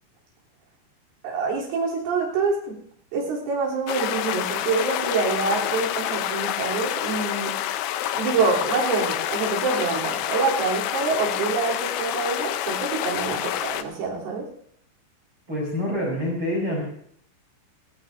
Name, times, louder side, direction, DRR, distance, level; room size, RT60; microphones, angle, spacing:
voice 1, 1.2-2.8 3.1-7.5 8.1-14.4, right 4 dB, 75° right, -4 dB, 6.0 m, -26 dB
sound 1, 3.9-13.8, left 12 dB, 90° left, 2.3 m, -28 dB
voice 2, 15.5-16.8, left 1 dB, 25° right, -3 dB, 4.8 m, -26 dB
19.5 x 17.0 x 2.7 m, 0.65 s
omnidirectional pair, 5.7 m